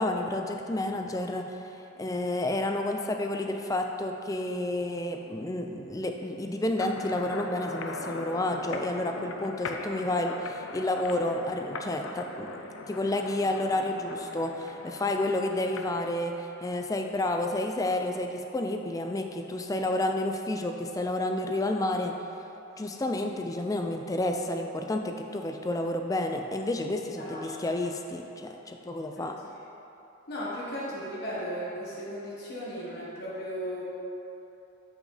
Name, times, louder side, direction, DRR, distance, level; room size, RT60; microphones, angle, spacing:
voice 1, 0.0-22.2 22.8-29.4, left 1 dB, 15° left, 4 dB, 0.4 m, -30 dB
sound 1, 6.8-16.0, left 3 dB, 80° left, 0.5 m, -40 dB
voice 2, 27.2-27.6 29.2-29.3 30.3-33.8, equal, 55° left, -7 dB, 1.5 m, -36 dB
7.6 x 6.2 x 3.3 m, 2.9 s
head